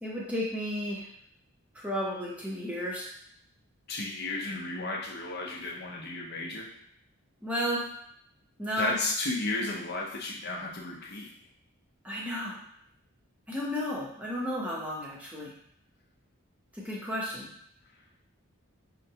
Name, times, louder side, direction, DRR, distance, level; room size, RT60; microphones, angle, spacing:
voice 1, 0.0-1.1 1.7-3.1 7.4-7.9 8.6-9.0 12.0-12.6 13.5-15.5 16.8-17.5, equal, 5° right, -5 dB, 0.7 m, -33 dB
voice 2, 3.9-6.7 8.8-11.3, left 2 dB, 45° left, -1 dB, 0.6 m, -33 dB
5.6 x 2.1 x 2.8 m, 0.69 s
head